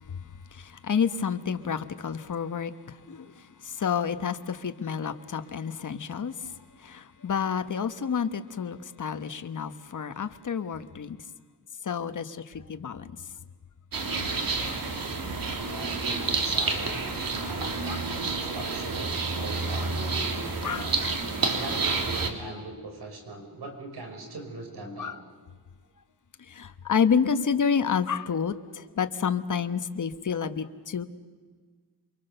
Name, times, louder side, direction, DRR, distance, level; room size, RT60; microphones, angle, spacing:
voice 1, 0.0-11.2 11.8-13.1 20.6-21.1 25.0-25.2 26.4-31.0, left 6 dB, 50° left, 9 dB, 1.2 m, -29 dB
sound 1, 13.9-22.3, right 3 dB, 60° right, 2.9 m, -29 dB
voice 2, 15.7-21.0 21.5-25.2, right 2 dB, 80° right, 4 dB, 5.4 m, -40 dB
28.5 x 23.5 x 6.8 m, 1.5 s
wide cardioid pair, 110°, 39 cm